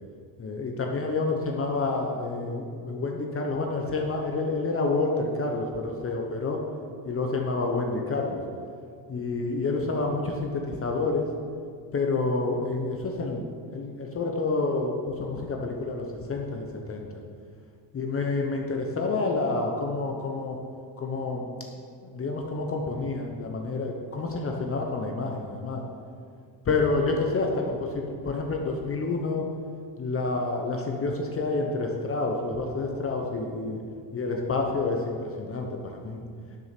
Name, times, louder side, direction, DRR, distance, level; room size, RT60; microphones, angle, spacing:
voice 1, 0.4-6.6 7.0-8.4 9.1-11.3 11.9-13.4 13.7-17.2 17.9-20.6 21.0-21.5 22.1-25.8 26.7-29.5 30.0-33.8 34.1-36.2, left 3 dB, 30° left, 1 dB, 1.0 m, -28 dB
10.5 x 6.4 x 6.0 m, 2.2 s
cardioid pair, 140°, 45 cm